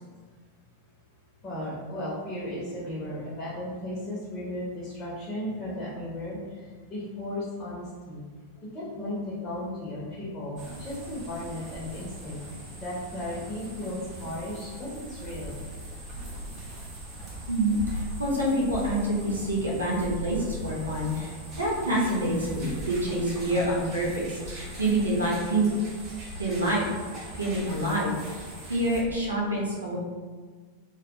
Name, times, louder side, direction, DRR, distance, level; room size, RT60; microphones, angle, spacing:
voice 1, 1.4-6.4 6.9-8.2 8.6-12.4 12.8-15.6 27.7-27.8, left 1 dB, 25° left, -7 dB, 0.7 m, -35 dB
sound 1, 10.6-29.0, right 1 dB, 30° right, 0.7 m, -40 dB
voice 2, 17.5-25.7 26.4-26.8 27.4-30.0, right 1 dB, 75° right, -4 dB, 0.6 m, -27 dB
2.2 x 2.2 x 2.7 m, 1.5 s
figure-of-eight pair, 90°, 0 cm